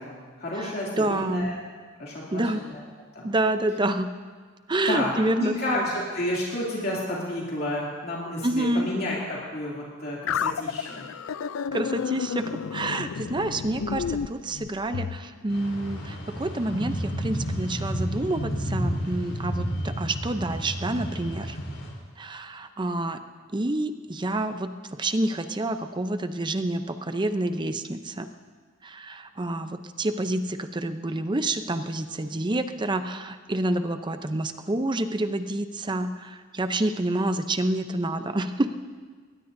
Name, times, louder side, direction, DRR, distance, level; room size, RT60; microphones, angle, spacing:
voice 1, 0.0-1.6 2.0-2.8 3.1-3.3 4.9-11.1, left 1 dB, 50° left, -5 dB, 2.7 m, -31 dB
voice 2, 0.6-1.5 2.3-2.6 3.2-4.1 4.7-5.8 8.4-8.9 11.7-21.6 22.2-23.2 23.5-28.3 28.8-38.7, right 1 dB, 25° right, 9 dB, 0.6 m, -28 dB
sound 1, 10.3-15.2, left 7 dB, 90° left, 0.4 m, -31 dB
sound 2, 15.5-21.9, equal, 70° left, 3.9 m, -31 dB
21.5 x 19.0 x 2.7 m, 1.5 s
head